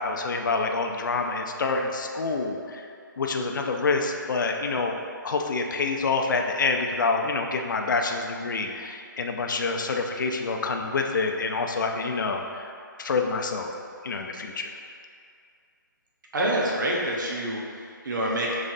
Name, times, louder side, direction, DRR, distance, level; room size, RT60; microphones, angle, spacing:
voice 1, 0.0-2.9 3.2-5.0 5.2-12.7 13.0-13.7 14.0-14.7, left 4 dB, 65° left, 3 dB, 0.5 m, -27 dB
voice 2, 16.3-18.6, right 1 dB, 65° right, -3 dB, 0.8 m, -27 dB
5.2 x 3.1 x 2.6 m, 2.3 s
hypercardioid pair, 155°, 11 cm